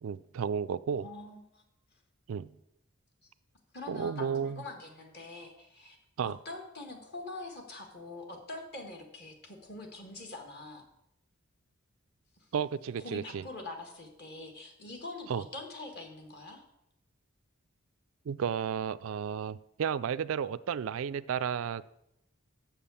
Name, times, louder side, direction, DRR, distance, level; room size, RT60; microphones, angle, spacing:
voice 1, 0.0-1.1 2.3-2.5 3.9-4.6 6.2-6.4 12.5-13.4 15.3-15.4 18.3-21.9, right 7 dB, 65° right, 14 dB, 0.3 m, -33 dB
voice 2, 1.0-1.6 3.7-6.0 6.2-10.8 13.0-16.6, left 2 dB, 50° left, 3 dB, 1.5 m, -44 dB
7.5 x 7.0 x 6.9 m, 0.82 s
head